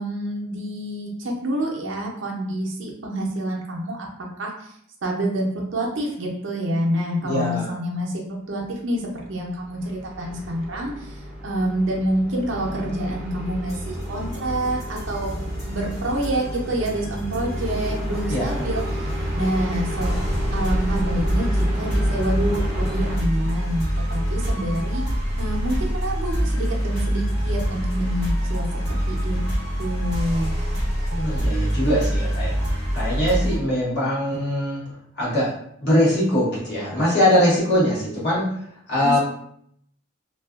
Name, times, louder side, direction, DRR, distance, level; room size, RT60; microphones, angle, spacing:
voice 1, 0.0-4.1 4.4-4.7 5.0-8.2 8.5-9.0 9.3-15.3 15.7-19.1 19.3-20.1 20.5-29.4 29.8-30.5 39.0-39.2, right 1 dB, 65° right, -1 dB, 0.5 m, -27 dB
voice 2, 7.2-7.7 18.3-18.6 31.1-32.5 32.9-34.8 35.2-35.5 35.8-38.4 38.9-39.2, equal, 55° left, -7 dB, 1.1 m, -21 dB
sound 1, 9.2-23.2, equal, ahead, 0.7 m, -31 dB
sound 2, 13.7-33.6, equal, 85° left, 1.5 m, -26 dB
2.5 x 2.3 x 2.4 m, 0.69 s
head